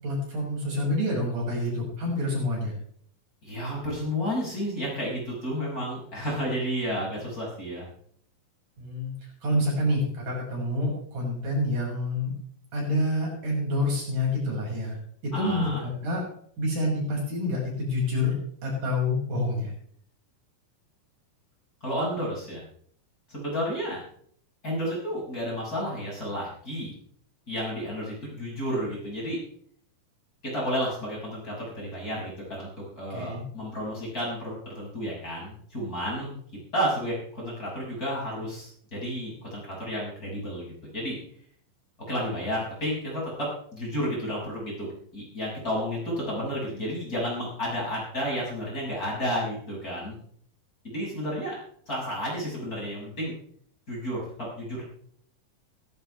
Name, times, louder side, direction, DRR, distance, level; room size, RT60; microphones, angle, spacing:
voice 1, 0.0-2.7 8.8-9.1 9.4-12.3 12.7-15.0 15.2-16.2 16.6-19.7 33.1-33.4, left 1 dB, 65° right, -3 dB, 7.8 m, -27 dB
voice 2, 3.4-7.8 15.3-15.8 21.8-22.6 23.3-24.0 24.6-26.9 27.5-29.4 30.4-36.4 36.7-41.2 42.1-50.1 50.8-51.6 51.9-53.3 53.9-54.8, equal, 25° left, -5 dB, 6.7 m, -31 dB
16.5 x 16.0 x 3.4 m, 0.62 s
omnidirectional pair, 4.0 m